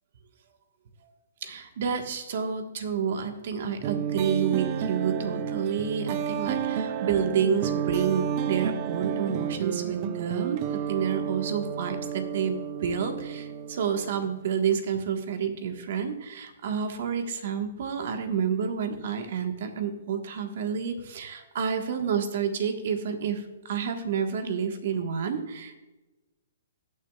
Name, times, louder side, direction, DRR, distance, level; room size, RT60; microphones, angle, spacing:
voice 1, 1.4-25.8, right 7 dB, 60° right, 6 dB, 1.4 m, -29 dB
sound 1, 3.8-14.4, right 8 dB, 40° right, 0.7 m, -31 dB
18.5 x 6.6 x 2.4 m, 1.1 s
hypercardioid pair, 140°, 0 cm